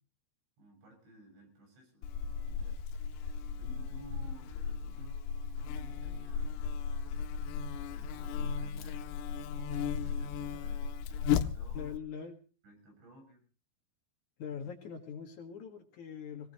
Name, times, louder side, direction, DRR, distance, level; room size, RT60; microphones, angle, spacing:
voice 1, 0.6-2.1 2.4-2.8 3.6-5.2 5.6-6.8 7.8-12.0 12.6-13.4, right 1 dB, 65° right, 3 dB, 9.0 m, -57 dB
Buzz, 2.0-12.0, left 7 dB, 85° left, 3.5 m, -35 dB
voice 2, 11.7-12.4 14.4-16.5, left 7 dB, 60° left, 4 dB, 2.1 m, -42 dB
22.0 x 19.0 x 3.0 m, 0.36 s
omnidirectional pair, 5.8 m